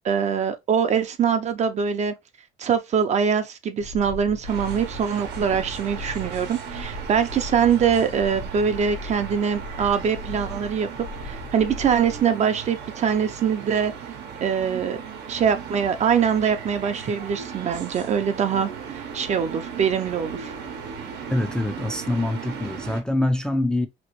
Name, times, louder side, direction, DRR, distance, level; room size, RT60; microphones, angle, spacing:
voice 1, 0.0-2.1 2.6-10.9 11.2-13.9 14.4-15.0 15.3-20.5, right 7 dB, 45° right, 0.6 m, -23 dB
sound 1, 3.8-12.3, left 2 dB, 70° left, 1.3 m, -38 dB
sound 2, 4.5-23.0, right 7 dB, 80° right, 0.8 m, -37 dB
voice 2, 21.3-23.9, left 1 dB, 5° left, 0.4 m, -24 dB
3.0 x 2.6 x 2.9 m
cardioid pair, 110°, 17 cm